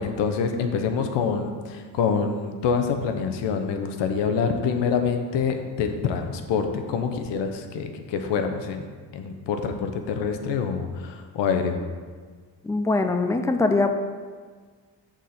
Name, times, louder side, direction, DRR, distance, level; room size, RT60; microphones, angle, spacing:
voice 1, 0.0-8.8 9.1-11.8, left 6 dB, 90° left, 6 dB, 0.9 m, -26 dB
voice 2, 12.6-14.0, left 3 dB, 10° left, 6 dB, 0.3 m, -22 dB
6.3 x 4.2 x 6.4 m, 1.5 s
cardioid pair, 140°, 42 cm